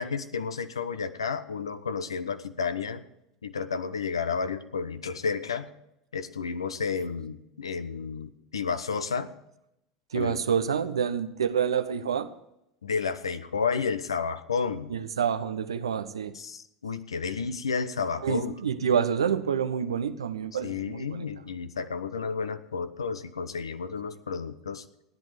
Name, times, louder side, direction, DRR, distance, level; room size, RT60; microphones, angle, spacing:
voice 1, 0.0-3.0 3.4-5.7 6.1-9.3 10.1-10.4 12.8-14.9 16.3-18.6 20.6-24.8, left 5 dB, 80° left, 11 dB, 0.9 m, -31 dB
voice 2, 10.1-12.3 14.9-16.3 18.2-21.1, right 7 dB, 80° right, 9 dB, 0.9 m, -27 dB
15.5 x 10.5 x 5.1 m, 0.82 s
figure-of-eight pair, 75°, 3 cm